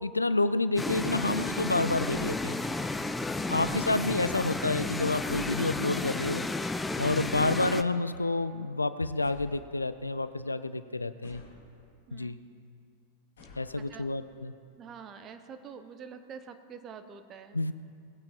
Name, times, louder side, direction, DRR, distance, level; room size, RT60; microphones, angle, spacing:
voice 1, 0.0-2.5 3.5-6.5 7.0-11.4 12.1-12.4 13.6-14.5 17.5-17.7, left 2 dB, 80° left, 14 dB, 0.4 m, -29 dB
sound 1, 0.8-7.8, left 2 dB, 10° left, 0.5 m, -32 dB
sound 2, 3.6-4.4 5.3-6.1 7.2-8.0 9.2-10.2 11.2-12.0 13.4-14.3, left 3 dB, 60° left, 2.6 m, -53 dB
voice 2, 13.7-14.1 14.8-17.6, right 6 dB, 30° right, 8 dB, 0.9 m, -47 dB
19.5 x 8.7 x 4.4 m, 2.4 s
figure-of-eight pair, 90°, 0 cm